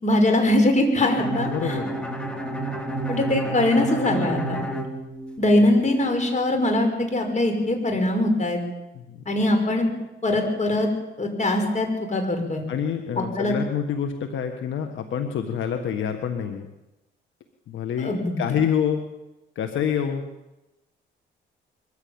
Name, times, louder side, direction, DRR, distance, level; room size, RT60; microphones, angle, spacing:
voice 1, 0.0-1.8 3.1-4.6 5.4-8.6 9.3-9.9 10.2-10.9 11.2-12.6 13.2-13.6 18.0-18.5, left 1 dB, 35° left, 5 dB, 5.9 m, -22 dB
Bowed string instrument, 1.0-5.8, right 2 dB, 5° left, 3.3 m, -30 dB
voice 2, 1.5-1.9 5.6-5.7 9.0-9.2 12.7-16.7 17.7-19.0 19.6-20.2, left 8 dB, 75° left, 6 dB, 1.7 m, -27 dB
23.0 x 15.0 x 8.9 m, 0.99 s
cardioid pair, 90°, 20 cm